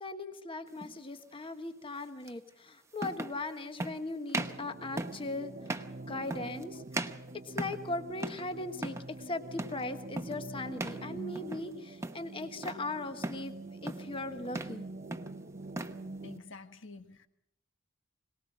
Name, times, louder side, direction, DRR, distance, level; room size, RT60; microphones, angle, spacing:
voice 1, 0.0-6.8 7.5-9.0 9.3-13.5 13.8-14.8, left 2 dB, 25° left, 1.3 m, -39 dB
sound 1, 0.8-1.0 2.3-2.4 3.0-3.4 3.8-4.0 4.3-4.6 5.0-5.3 5.7-6.0 6.3-6.6 6.9-7.9 8.2-8.5 8.7-9.1 9.6-9.8 10.2-10.4 10.8-11.0 11.4-11.7 12.0-12.8 13.2-13.5 13.9-14.2 14.5-14.8 15.1-16.0, right 2 dB, 15° right, 0.9 m, -38 dB
sound 2, 4.4-16.4, right 2 dB, 40° right, 0.8 m, -45 dB
voice 2, 16.2-17.3, left 3 dB, 75° left, 1.5 m, -48 dB
22.5 x 19.5 x 6.2 m
head